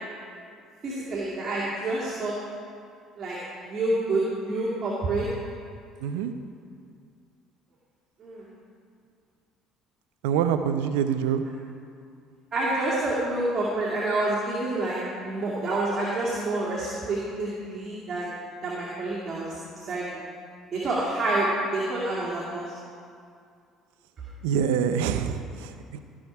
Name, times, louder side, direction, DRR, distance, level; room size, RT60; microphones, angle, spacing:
voice 1, 0.8-2.3 3.2-5.3 8.2-8.5 12.5-18.3 18.6-19.6 19.8-20.2 20.7-22.7, right 2 dB, 40° right, -7 dB, 2.4 m, -28 dB
voice 2, 6.0-6.3 10.2-11.4 24.4-26.0, right 8 dB, 70° right, 9 dB, 0.5 m, -25 dB
16.0 x 6.4 x 4.7 m, 2.3 s
figure-of-eight pair, 55°, 0 cm